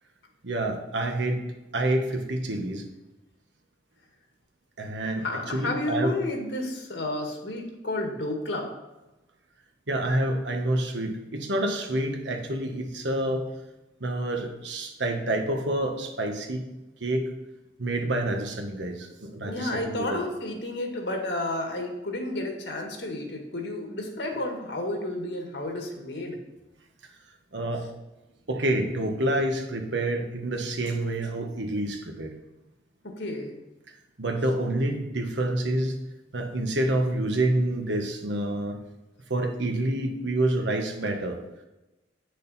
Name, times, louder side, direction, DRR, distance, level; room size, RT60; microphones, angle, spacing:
voice 1, 0.4-1.4 1.7-2.8 4.8-6.1 9.9-13.4 14.0-16.6 17.0-17.3 17.8-20.2 27.5-27.8 28.5-32.3 34.2-36.0 36.3-38.8 39.3-41.4, right 1 dB, 85° right, 3 dB, 1.3 m, -28 dB
voice 2, 5.2-8.7 19.4-26.4 33.0-33.5, left 1 dB, 75° left, 2 dB, 1.8 m, -31 dB
8.7 x 6.6 x 4.2 m, 1.0 s
head